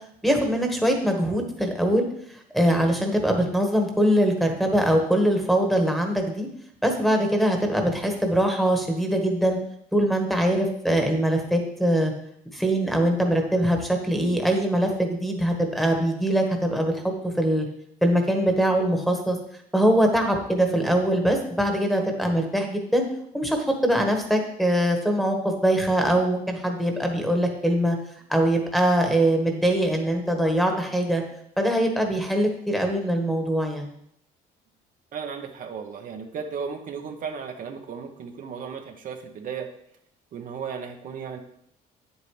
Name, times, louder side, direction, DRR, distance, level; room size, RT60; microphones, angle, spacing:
voice 1, 0.2-2.0 2.5-6.5 6.8-9.6 9.9-12.1 12.5-17.7 18.0-19.4 19.7-23.0 23.3-28.0 28.3-31.2 31.6-33.9, right 1 dB, ahead, 2 dB, 1.5 m, -22 dB
voice 2, 35.1-39.7 40.3-41.4, right 6 dB, 55° right, 3 dB, 1.0 m, -35 dB
9.0 x 8.2 x 3.3 m, 0.70 s
cardioid pair, 110°, 17 cm